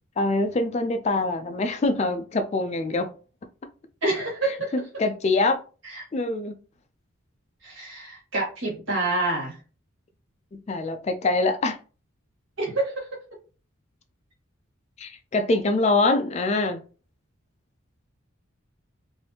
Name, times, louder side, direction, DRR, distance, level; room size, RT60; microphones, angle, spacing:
voice 1, 0.2-3.1 4.4-5.6 6.1-6.6 10.7-11.8 15.0-16.8, left 2 dB, 30° left, 0.3 m, -24 dB
voice 2, 4.0-4.7 5.9-6.0 7.6-9.6 12.6-13.0, right 2 dB, 65° right, 1.6 m, -27 dB
3.3 x 2.6 x 2.8 m
head